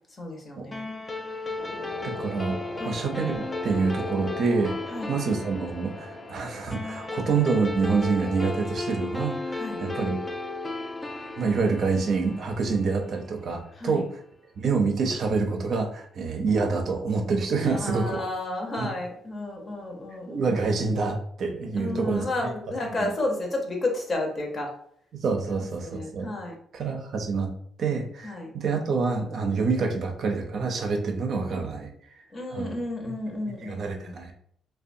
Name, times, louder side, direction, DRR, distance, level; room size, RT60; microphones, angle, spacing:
voice 1, 0.2-0.8 2.8-3.0 4.9-5.1 9.5-9.8 13.7-14.0 17.7-20.5 21.8-24.7 25.5-26.5 28.2-28.5 32.3-34.1, left 2 dB, 40° left, 1 dB, 0.7 m, -32 dB
sound 1, 0.7-13.5, left 2 dB, 15° left, 0.3 m, -35 dB
sound 2, 1.6-8.5, left 2 dB, 75° left, 0.7 m, -42 dB
voice 2, 2.0-2.6 2.9-4.7 5.1-10.2 11.4-14.1 14.6-18.2 18.8-18.9 20.3-22.5 23.0-23.1 25.2-26.3 26.7-27.5 27.8-31.9 32.5-32.7 33.1-33.2 33.6-34.3, right 4 dB, 60° right, 4 dB, 0.5 m, -27 dB
2.6 x 2.2 x 2.5 m, 0.65 s
cardioid pair, 90°, 0 cm